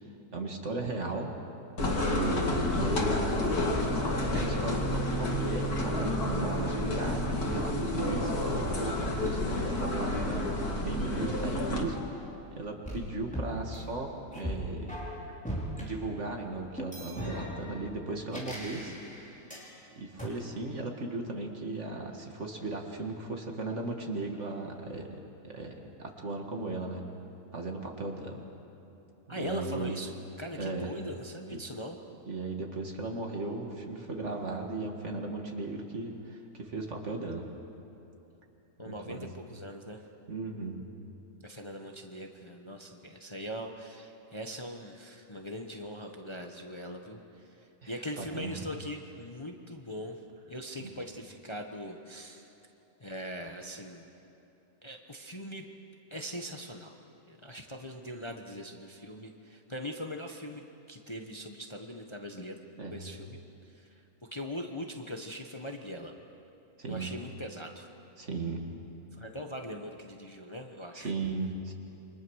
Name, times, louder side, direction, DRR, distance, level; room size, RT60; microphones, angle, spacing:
voice 1, 0.3-1.3 2.1-3.5 4.3-12.2 12.6-14.9 15.8-19.0 20.0-27.1 27.5-28.4 29.4-30.0 30.6-30.9 31.5-31.6 32.3-37.5 38.9-39.3 40.3-40.8 47.8-48.6 50.8-50.9 62.8-63.1 66.8-67.1 68.2-68.7 70.9-71.7, right 3 dB, 50° right, 2 dB, 2.4 m, -36 dB
sound 1, 1.8-11.8, left 1 dB, 85° left, 2.9 m, -30 dB
sound 2, 8.9-12.4 12.8-15.8 16.8-19.7 20.2-20.3, equal, 5° left, 4.8 m, -40 dB
voice 2, 29.3-32.0 38.8-40.0 41.4-50.2 50.5-52.5 53.0-54.1 54.8-55.7 56.1-56.9 57.3-60.6 60.9-62.5 62.9-63.4 63.7-63.9 64.3-66.1 66.9-67.9 69.1-71.1, equal, 20° left, 3 dB, 1.2 m, -41 dB
28.5 x 25.0 x 6.5 m, 2.9 s
omnidirectional pair, 1.6 m